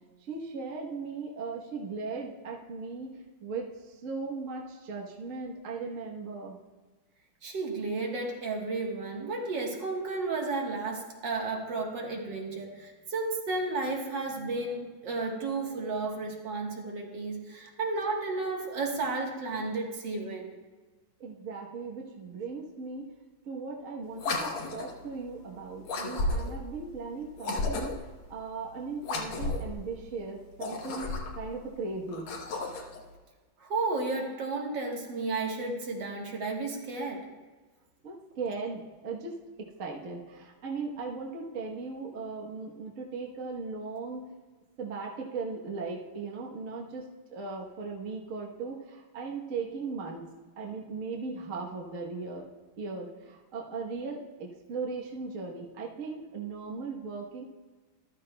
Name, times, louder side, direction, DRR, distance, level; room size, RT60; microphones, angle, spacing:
voice 1, 0.2-6.6 21.2-23.1 23.4-32.3 38.0-44.2 44.8-50.3 50.6-52.5 52.8-57.4, right 4 dB, 45° right, -1 dB, 1.3 m, -38 dB
voice 2, 7.4-20.5 33.6-37.2, right 3 dB, 65° right, 0 dB, 2.0 m, -33 dB
sound 1, 24.1-25.0 25.8-26.7 27.4-28.1 29.0-29.7 30.5-31.5 32.1-33.0, left 2 dB, 90° left, 1.9 m, -33 dB
14.0 x 12.5 x 2.2 m, 1.3 s
omnidirectional pair, 2.2 m